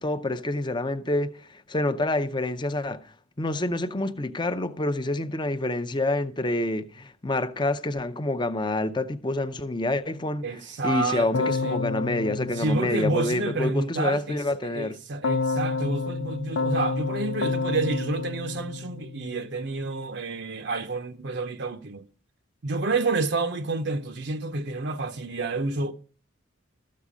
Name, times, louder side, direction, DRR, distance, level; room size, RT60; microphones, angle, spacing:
voice 1, 0.0-15.0, left 2 dB, 20° left, 0.6 m, -28 dB
voice 2, 10.4-11.8 12.5-22.0 22.6-25.9, right 3 dB, 55° right, 0.6 m, -29 dB
Keyboard (musical), 11.3-13.7 15.2-19.5, left 4 dB, 70° left, 0.5 m, -29 dB
13.5 x 8.5 x 5.0 m
head